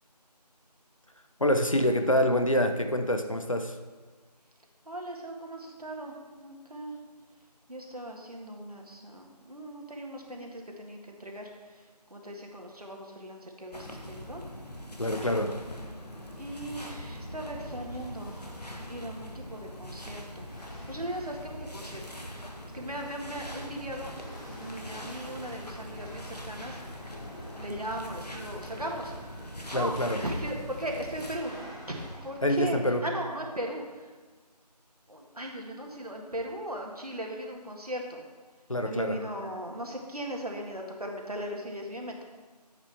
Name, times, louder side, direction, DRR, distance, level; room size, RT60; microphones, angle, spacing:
voice 1, 1.4-3.8 15.0-15.5 29.7-30.2 32.4-33.0 38.7-39.2, left 1 dB, 50° left, 6 dB, 0.7 m, -26 dB
voice 2, 4.9-6.9 7.7-11.8 12.1-14.4 16.4-22.2 22.4-24.1 24.5-26.8 27.6-29.1 29.7-30.0 30.2-31.6 31.9-34.1 35.1-38.2 38.8-42.2, right 1 dB, 60° right, 1 dB, 1.8 m, -38 dB
sound 1, 13.7-31.4, equal, 70° left, 1.5 m, -42 dB
Chatter / Hiss / Rattle, 15.9-32.6, equal, 25° left, 1.9 m, -49 dB
10.5 x 8.1 x 3.5 m, 1.4 s
figure-of-eight pair, 175°, 21 cm